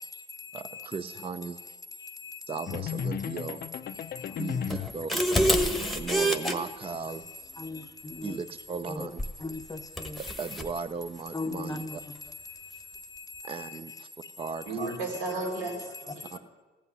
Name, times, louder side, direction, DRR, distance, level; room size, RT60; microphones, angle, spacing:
voice 1, 0.0-0.9 2.0-2.7 3.8-4.8 5.6-6.6 7.1-8.4 8.9-9.1 9.4-10.3 11.3-14.5 15.1-15.2 15.7-16.4, left 3 dB, 20° left, 0.7 m, -41 dB
voice 2, 0.5-1.8 2.5-4.0 4.4-5.3 5.9-7.6 8.2-9.2 10.2-11.8 13.4-14.1 14.4-14.8 16.3-16.4, right 5 dB, 30° right, 0.5 m, -37 dB
sound 1, 2.7-5.0, left 8 dB, 50° left, 0.4 m, -34 dB
sound 2, 4.7-6.6 9.2-9.4 10.0-10.7, equal, ahead, 1.2 m, -27 dB
voice 3, 14.7-16.4, right 2 dB, 85° right, 3.1 m, -34 dB
15.0 x 5.6 x 9.5 m
cardioid pair, 90°, 20 cm